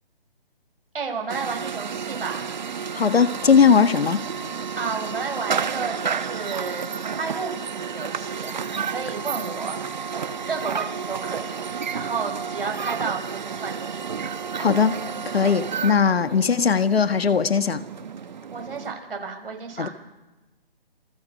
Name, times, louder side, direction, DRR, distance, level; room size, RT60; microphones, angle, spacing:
voice 1, 0.9-2.4 4.7-6.9 7.2-9.8 10.5-14.1 16.3-16.4 18.5-19.9, right 5 dB, 65° right, 2 dB, 6.3 m, -32 dB
sound 1, 1.3-18.9, right 6 dB, 50° right, 1.2 m, -31 dB
voice 2, 2.9-4.2 14.6-15.0 15.3-17.8 19.8-19.9, left 6 dB, 80° left, 12 dB, 1.6 m, -19 dB
28.0 x 22.5 x 5.4 m, 1.2 s
hypercardioid pair, 170°, 30 cm